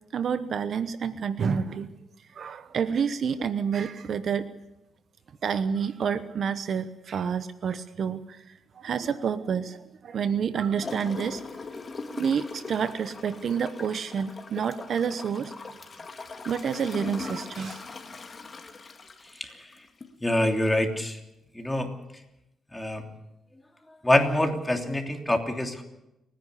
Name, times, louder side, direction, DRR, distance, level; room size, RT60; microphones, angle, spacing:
voice 1, 0.1-1.9 2.3-4.5 5.4-8.4 8.8-9.8 10.0-11.4 12.2-15.5 16.4-17.8, right 7 dB, 60° right, 13 dB, 1.0 m, -28 dB
Gurgling / Toilet flush, 10.8-20.2 20.7-20.8, left 4 dB, 35° left, 2.1 m, -40 dB
voice 2, 20.2-21.2 21.5-21.9 22.7-23.0 24.0-25.8, left 1 dB, 10° left, 4 dB, 3.1 m, -25 dB
29.5 x 10.5 x 8.4 m, 0.88 s
cardioid pair, 90°, 0 cm